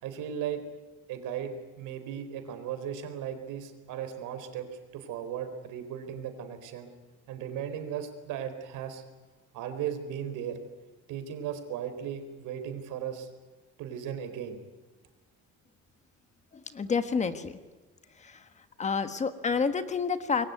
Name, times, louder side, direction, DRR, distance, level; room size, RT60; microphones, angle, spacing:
voice 1, 0.0-0.6 1.1-4.7 4.9-6.9 7.3-9.0 9.5-10.6 11.1-13.3 13.8-14.6, right 9 dB, 90° right, 8 dB, 4.3 m, -36 dB
voice 2, 16.5-17.6 18.2-20.5, left 5 dB, 25° left, 10 dB, 1.4 m, -30 dB
26.0 x 22.0 x 9.5 m, 1.2 s
cardioid pair, 175°, 30 cm